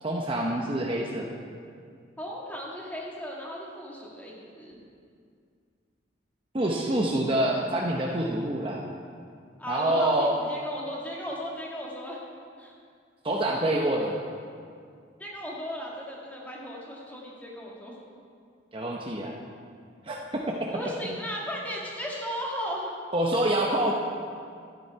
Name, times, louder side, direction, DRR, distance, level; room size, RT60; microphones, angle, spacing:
voice 1, 0.0-1.3 6.5-8.8 9.7-10.3 13.2-14.2 18.7-19.4 20.0-20.7 21.1-21.2 23.1-23.9, right 1 dB, 25° right, -1 dB, 0.7 m, -26 dB
voice 2, 2.2-4.8 9.6-12.2 12.6-12.7 15.2-18.0 20.7-22.9, equal, 10° left, -4 dB, 1.6 m, -36 dB
12.5 x 9.3 x 4.6 m, 2.3 s
head